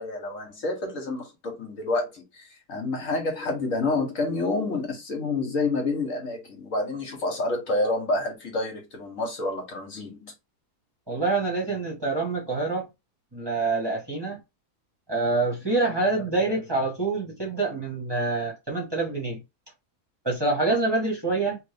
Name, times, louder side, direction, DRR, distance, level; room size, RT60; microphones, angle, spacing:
voice 1, 0.0-10.3, left 2 dB, 65° left, 1.6 m, -28 dB
voice 2, 11.1-12.9 13.3-14.4 15.1-19.4 20.2-21.6, right 3 dB, 20° right, 1.1 m, -26 dB
3.4 x 2.7 x 3.4 m
omnidirectional pair, 1.5 m